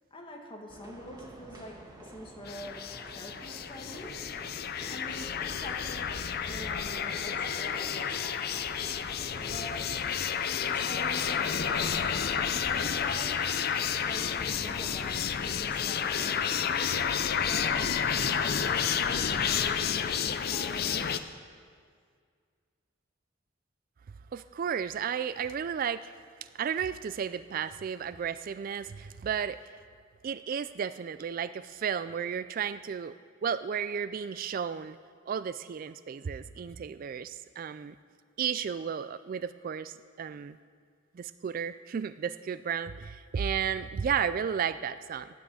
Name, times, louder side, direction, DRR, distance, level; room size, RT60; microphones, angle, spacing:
voice 1, 0.1-4.4 4.9-8.7 9.4-10.0 10.7-13.6 14.0-17.1 17.4-17.9 18.2-21.4, equal, 25° left, 1 dB, 1.7 m, -45 dB
sound 1, 0.7-16.8, right 1 dB, 20° right, 1.7 m, -50 dB
sound 2, 2.5-21.2, left 7 dB, 50° left, 0.5 m, -30 dB
voice 2, 24.3-26.1 26.6-29.6 30.2-33.1 33.4-35.0 35.3-38.0 38.4-40.6 41.1-45.3, right 7 dB, 45° right, 13 dB, 0.3 m, -33 dB
13.0 x 9.6 x 7.7 m, 2.1 s
head